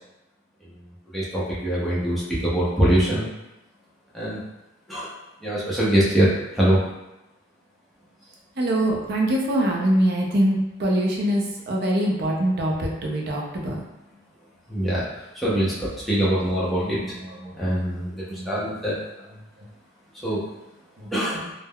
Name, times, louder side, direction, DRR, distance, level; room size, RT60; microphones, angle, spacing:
voice 1, 1.1-3.3 4.1-4.4 4.9-5.1 5.4-6.8 14.7-15.1 15.3-17.0 17.6-19.0 20.2-20.5 21.1-21.5, right 1 dB, ahead, -9 dB, 0.6 m, -23 dB
voice 2, 8.6-13.8 16.3-16.4 16.8-17.1 17.4-17.5 18.3-18.5, right 1 dB, 50° right, -1 dB, 0.5 m, -23 dB
3.4 x 2.0 x 2.2 m, 0.96 s
head